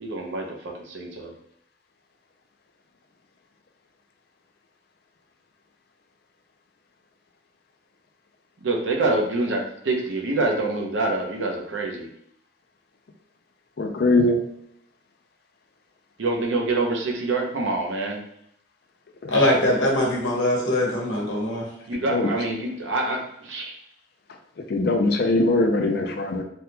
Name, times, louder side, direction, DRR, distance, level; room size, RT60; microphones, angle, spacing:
voice 1, 0.0-1.3 8.6-12.1 16.2-18.2 19.3-19.5 21.9-23.8, right 2 dB, 85° right, 1 dB, 0.7 m, -26 dB
voice 2, 13.8-14.4 19.2-19.3 22.1-22.3 24.7-26.4, left 2 dB, 55° left, 4 dB, 0.4 m, -21 dB
voice 3, 19.3-21.6, left 1 dB, 80° left, -2 dB, 1.0 m, -22 dB
3.4 x 2.2 x 2.8 m, 0.75 s
head